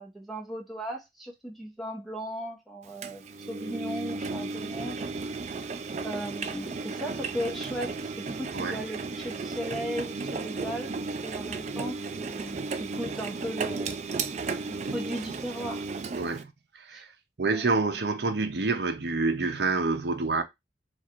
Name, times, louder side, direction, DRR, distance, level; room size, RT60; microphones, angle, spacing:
voice 1, 0.0-5.0 6.0-11.0 11.2-14.0 14.7-15.9 16.9-17.0 17.4-17.7, equal, ahead, 0.9 m, -37 dB
Engine, 3.0-16.4, right 4 dB, 35° right, 0.3 m, -34 dB
voice 2, 16.2-17.1 17.4-20.4, right 3 dB, 60° right, 0.7 m, -28 dB
3.1 x 2.5 x 4.4 m
head